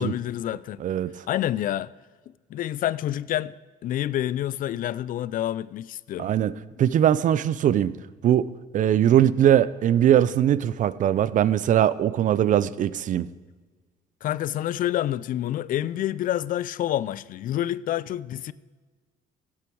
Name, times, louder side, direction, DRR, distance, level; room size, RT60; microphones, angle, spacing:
voice 1, 0.0-0.8 1.3-1.9 2.5-3.5 3.8-6.3 14.2-18.5, left 12 dB, 55° left, 0.4 m, -28 dB
voice 2, 0.8-1.1 6.2-8.0 8.2-13.3, right 10 dB, 50° right, 0.5 m, -21 dB
15.0 x 8.6 x 4.7 m
cardioid pair, 110°, 17 cm